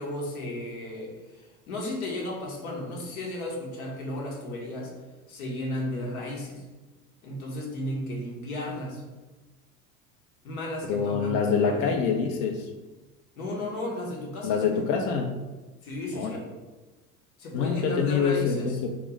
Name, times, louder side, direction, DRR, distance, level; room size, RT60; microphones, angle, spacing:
voice 1, 0.0-4.9 5.3-6.6 7.2-9.0 10.4-12.0 13.4-14.8 15.8-16.4 17.4-18.8, left 1 dB, 85° left, -2 dB, 1.0 m, -34 dB
voice 2, 10.9-12.7 14.4-15.4 16.1-16.4 17.5-18.9, left 6 dB, 55° left, 3 dB, 0.5 m, -26 dB
3.0 x 2.4 x 3.7 m, 1.2 s
hypercardioid pair, 80°, 42 cm